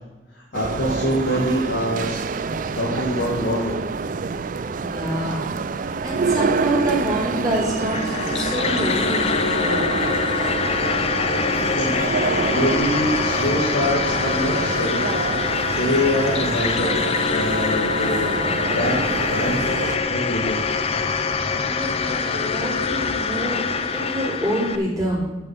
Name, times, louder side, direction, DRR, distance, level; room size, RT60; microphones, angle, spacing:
voice 1, 0.3-2.2 2.7-3.8 11.7-12.0 12.5-15.1 15.8-17.0 17.3-18.3 18.7-19.0 19.3-19.7 20.1-20.6, equal, 85° left, -3 dB, 2.2 m, -24 dB
sound 1, 0.5-20.0, right 4 dB, 45° right, 0.4 m, -27 dB
voice 2, 4.7-9.9 21.5-23.6 23.9-25.3, right 1 dB, 20° right, -6 dB, 3.9 m, -27 dB
sound 2, 7.3-18.7, left 2 dB, 70° left, 0.9 m, -33 dB
sound 3, 7.8-24.8, left 5 dB, 35° left, 0.6 m, -24 dB
10.5 x 6.8 x 5.8 m, 1.1 s
head